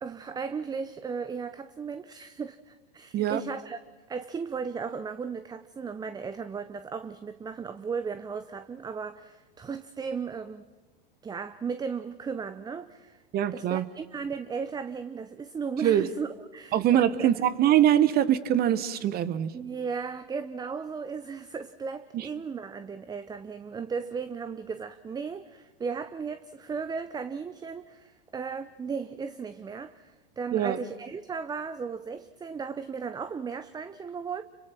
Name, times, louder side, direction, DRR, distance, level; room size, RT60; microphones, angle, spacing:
voice 1, 0.0-3.8 4.1-10.6 11.2-13.2 13.5-17.3 19.5-34.4, right 5 dB, 15° right, 0.7 m, -36 dB
voice 2, 13.3-13.8 15.8-16.0 16.7-19.5 22.1-22.3 30.5-30.8, right 11 dB, 35° right, 1.3 m, -23 dB
29.5 x 24.0 x 6.0 m
hypercardioid pair, 110°, 29 cm